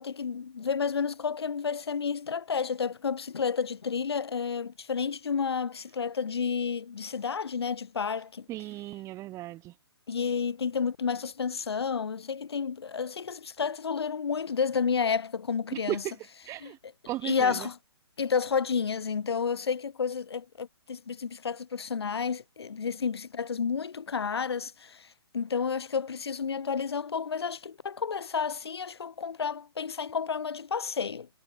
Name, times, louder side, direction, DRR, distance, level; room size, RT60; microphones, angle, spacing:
voice 1, 0.0-8.5 10.1-16.0 16.6-16.7 17.2-17.7 18.2-25.1 25.3-31.3, left 6 dB, 70° left, 2.3 m, -31 dB
voice 2, 8.5-9.8 15.7-16.2 16.4-16.8 17.1-17.7, right 16 dB, 20° right, 1.8 m, -36 dB
figure-of-eight pair, 130°, 14 cm